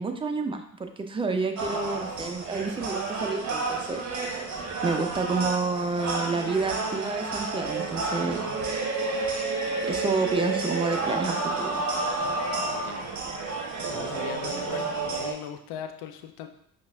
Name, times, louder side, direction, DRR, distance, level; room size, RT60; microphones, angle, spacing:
voice 1, 0.0-4.0 4.8-8.5 9.9-11.8, right 3 dB, 15° right, 6 dB, 0.3 m, -29 dB
sound 1, 1.6-15.3, right 3 dB, 40° right, 1.0 m, -30 dB
voice 2, 12.6-13.1 13.8-16.5, left 9 dB, 60° left, 7 dB, 0.6 m, -40 dB
5.4 x 2.4 x 2.3 m, 0.66 s
hypercardioid pair, 50°, 43 cm